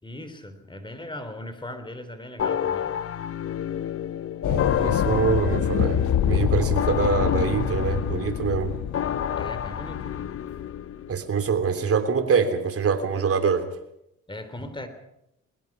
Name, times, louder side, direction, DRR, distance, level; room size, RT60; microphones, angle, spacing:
voice 1, 0.0-3.0 9.4-10.3 14.3-14.9, left 1 dB, 15° left, 10 dB, 3.3 m, -38 dB
sound 1, 2.4-11.1, left 9 dB, 50° left, 0.8 m, -31 dB
sound 2, 4.4-10.6, left 10 dB, 70° left, 1.5 m, -26 dB
voice 2, 4.5-8.7 11.1-13.7, right 6 dB, 50° right, 7 dB, 3.2 m, -24 dB
21.5 x 21.5 x 6.0 m, 0.80 s
cardioid pair, 90°, 30 cm